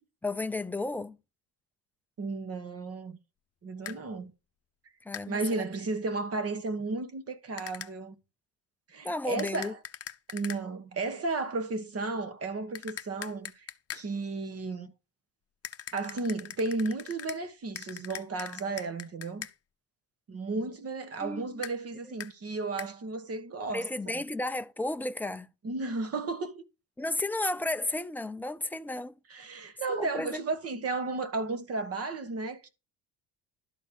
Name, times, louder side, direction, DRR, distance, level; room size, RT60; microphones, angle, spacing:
voice 1, 0.2-1.2 5.0-5.7 9.0-9.7 21.2-21.6 22.0-22.1 23.7-25.5 27.0-29.2 29.9-30.4, left 2 dB, 5° left, 0.5 m, -33 dB
voice 2, 2.2-3.2 3.6-4.3 5.3-8.2 8.9-9.7 10.3-13.7 13.9-14.9 15.9-19.5 20.3-24.2 25.6-26.6 29.3-32.7, right 3 dB, 35° right, 1.4 m, -34 dB
sound 1, 3.9-4.0 5.1-5.3 7.6-7.9 9.4-10.6 12.8-14.1 15.6-17.4 17.8-19.5 21.6-21.8 22.2-22.3 22.8-22.9, left 10 dB, 35° left, 0.8 m, -41 dB
12.0 x 4.2 x 6.9 m
cardioid pair, 130°, 43 cm